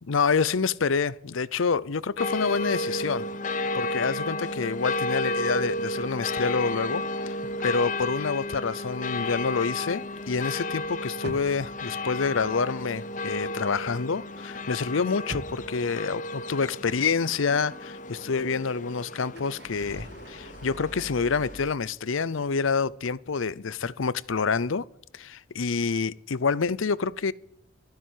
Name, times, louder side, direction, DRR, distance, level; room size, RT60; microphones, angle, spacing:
voice 1, 0.0-3.3 3.7-7.4 7.6-24.9 25.1-27.3, left 5 dB, 80° left, 0.6 m, -27 dB
sound 1, 2.2-21.6, left 2 dB, 40° left, 0.8 m, -33 dB
sound 2, 6.2-8.8 9.0-14.3 14.5-16.6 17.0-17.1 19.2-21.7, right 1 dB, 55° right, 1.3 m, -46 dB
13.0 x 12.5 x 7.5 m
head